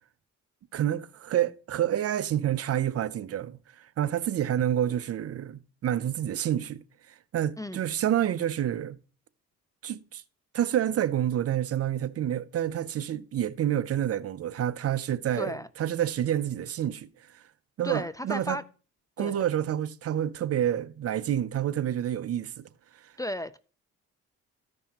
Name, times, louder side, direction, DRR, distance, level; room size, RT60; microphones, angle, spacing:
voice 1, 0.7-6.8 7.3-9.0 9.8-10.2 10.5-17.1 17.3-17.4 17.8-18.6 19.2-22.6 23.0-23.1, right 11 dB, 50° right, 0.6 m, -28 dB
voice 2, 15.4-15.7 17.8-18.6 19.2-19.4 23.2-23.6, left 1 dB, 10° left, 0.4 m, -34 dB
14.5 x 5.5 x 2.9 m
cardioid pair, 90°, 30 cm